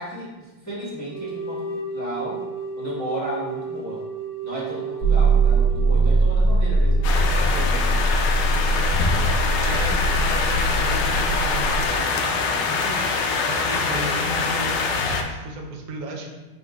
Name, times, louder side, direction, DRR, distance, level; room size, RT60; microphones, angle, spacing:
voice 1, 0.0-2.4 2.7-4.1 4.4-7.9 12.4-13.0, right 1 dB, 10° left, -10 dB, 1.0 m, -34 dB
sound 1, 1.1-7.9, right 4 dB, 65° right, 1.3 m, -34 dB
sound 2, 5.0-11.9, right 2 dB, 45° left, 1.6 m, -21 dB
sound 3, 7.0-15.2, left 4 dB, 80° left, 1.0 m, -24 dB
voice 2, 9.5-12.1 13.5-16.4, right 2 dB, 85° right, 1 dB, 0.7 m, -35 dB
5.5 x 3.9 x 2.3 m, 1.1 s
omnidirectional pair, 2.4 m